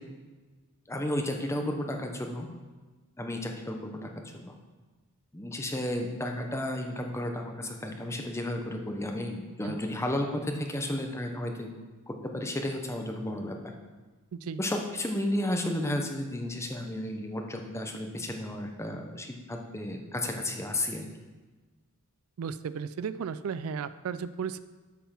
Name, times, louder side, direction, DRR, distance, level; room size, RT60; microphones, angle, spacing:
voice 1, 0.9-2.5 3.2-4.6 5.3-11.7 12.1-13.6 14.6-21.1, left 1 dB, 15° left, 3 dB, 0.9 m, -33 dB
voice 2, 22.4-24.6, right 6 dB, 70° right, 14 dB, 0.4 m, -34 dB
8.4 x 5.6 x 5.8 m, 1.3 s
head